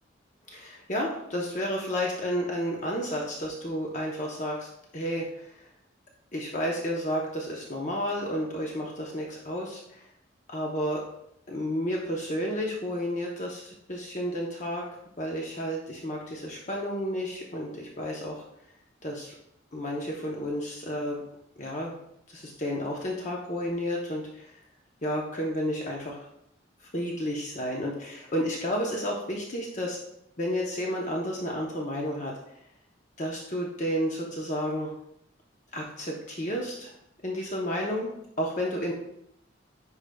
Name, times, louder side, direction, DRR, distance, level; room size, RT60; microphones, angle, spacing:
voice 1, 0.5-5.6 6.3-10.1 10.5-11.0 11.5-14.8 15.2-18.4 19.0-19.3 19.7-21.3 21.6-22.0 22.3-24.6 25.0-26.3 26.8-30.0 30.4-32.3 33.2-34.9 35.7-36.9 37.2-38.1 38.4-38.9, equal, 40° left, -2 dB, 0.8 m, -31 dB
10.0 x 4.9 x 2.3 m, 0.77 s
head